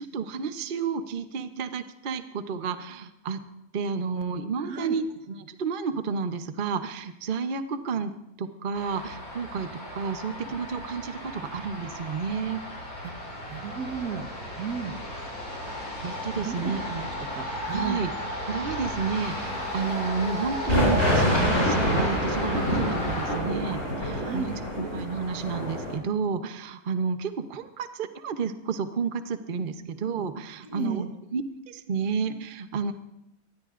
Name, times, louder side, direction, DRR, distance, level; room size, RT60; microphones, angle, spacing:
voice 1, 0.0-3.4 3.7-8.1 8.4-12.6 16.0-16.8 17.7-18.1 18.4-31.0 31.3-32.9, right 5 dB, 40° right, 8 dB, 0.8 m, -31 dB
voice 2, 4.6-5.0 13.0-13.1 13.5-14.3 14.6-15.0 16.4-18.0 24.2-24.5 30.7-31.1, right 6 dB, 80° right, 5 dB, 1.7 m, -33 dB
sound 1, 8.8-23.3, left 1 dB, 70° left, 7.3 m, -35 dB
sound 2, 20.7-26.0, equal, 50° left, 5.6 m, -26 dB
23.0 x 19.5 x 2.5 m, 0.87 s
omnidirectional pair, 1.6 m